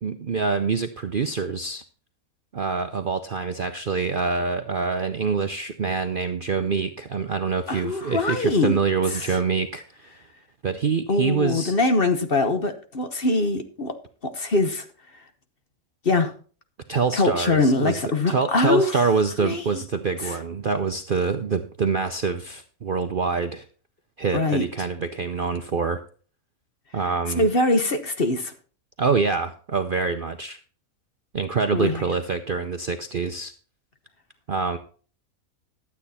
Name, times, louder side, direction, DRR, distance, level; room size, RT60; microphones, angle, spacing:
voice 1, 0.0-1.8 2.5-10.1 10.6-11.7 16.9-18.0 18.3-23.6 24.2-26.0 26.9-27.5 29.0-30.6 31.3-33.5 34.5-34.8, right 5 dB, 50° right, 0.7 m, -25 dB
voice 2, 7.7-8.8 9.1-9.3 11.1-13.9 14.2-14.8 16.0-16.3 17.1-19.0 19.4-19.8 20.2-20.4 24.3-24.7 27.3-28.5 31.7-32.0, left 2 dB, 40° left, 1.2 m, -23 dB
12.0 x 8.6 x 4.2 m
omnidirectional pair, 1.6 m